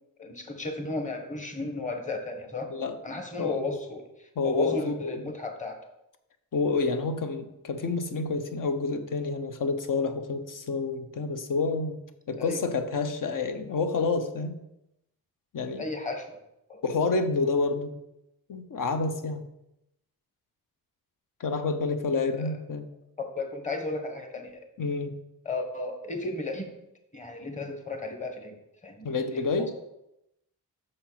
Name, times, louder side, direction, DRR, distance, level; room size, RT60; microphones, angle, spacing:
voice 1, 0.2-2.7 3.0-5.8 12.4-12.6 15.8-16.4 16.7-16.8 22.3-22.5 23.2-24.5 25.4-26.7 27.1-28.5 28.8-29.1 29.3-29.7, left 2 dB, 20° left, 5 dB, 1.4 m, -34 dB
voice 2, 4.4-5.3 6.5-12.0 12.3-14.5 15.5-15.8 16.8-17.9 18.5-19.4 21.4-22.9 24.8-25.1 29.0-29.7, left 4 dB, 55° left, 8 dB, 0.9 m, -28 dB
6.5 x 4.4 x 5.8 m, 0.86 s
cardioid pair, 75°, 37 cm